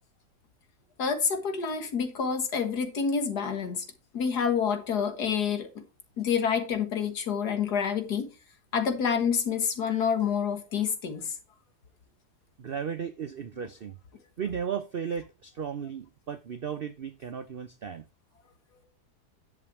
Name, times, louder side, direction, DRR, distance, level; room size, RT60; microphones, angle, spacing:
voice 1, 1.0-3.9 4.1-5.8 6.2-8.3 8.7-11.4, left 6 dB, 75° left, 2.1 m, -28 dB
voice 2, 12.6-14.0 14.4-18.0, right 7 dB, 65° right, 0.5 m, -35 dB
11.0 x 6.0 x 4.7 m
omnidirectional pair, 1.7 m